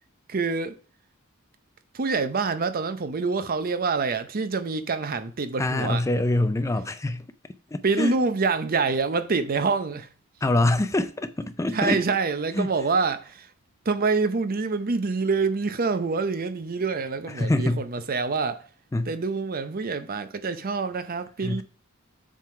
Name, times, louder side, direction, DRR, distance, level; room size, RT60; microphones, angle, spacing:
voice 1, 0.3-0.8 1.9-6.0 7.8-10.1 11.7-13.5 13.8-18.7 19.1-21.6, right 4 dB, 45° right, 0.6 m, -26 dB
voice 2, 5.6-7.3 7.7-8.2 10.4-12.0 12.5-12.7 17.3-17.8 18.9-19.1 21.4-21.6, left 2 dB, 15° left, 0.4 m, -25 dB
7.5 x 3.7 x 4.8 m
head